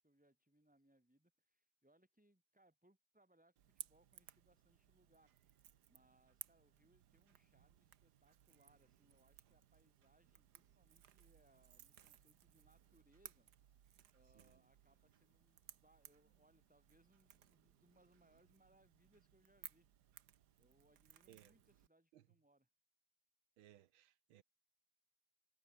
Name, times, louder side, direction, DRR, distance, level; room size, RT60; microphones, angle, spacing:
voice 1, 0.0-5.3 5.9-13.5 14.1-19.9 20.6-22.7, right 1 dB, 5° right, 2.8 m, -74 dB
Crackle / Crack, 3.6-21.9, right 10 dB, 60° right, 1.5 m, -61 dB
sound 1, 11.0-17.6, left 1 dB, 25° left, 5.8 m, -91 dB
voice 2, 23.6-24.4, right 12 dB, 85° right, 1.7 m, -65 dB
omnidirectional pair, 2.2 m